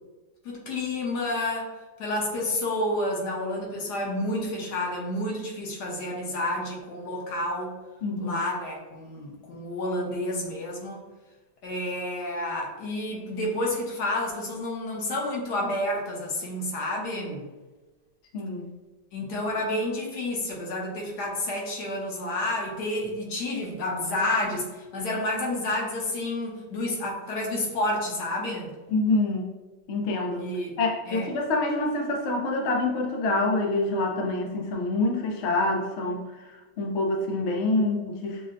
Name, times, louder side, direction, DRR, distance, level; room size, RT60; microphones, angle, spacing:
voice 1, 0.4-1.7 2.0-7.7 8.2-11.0 11.6-17.5 19.1-28.7 30.4-30.8 31.1-31.3, left 1 dB, 65° left, -2 dB, 1.4 m, -30 dB
voice 2, 8.0-8.4 18.3-18.8 28.9-29.5 29.9-30.5 30.8-38.4, left 2 dB, 85° left, 1 dB, 0.6 m, -26 dB
6.4 x 2.1 x 2.5 m, 1.2 s
omnidirectional pair, 2.0 m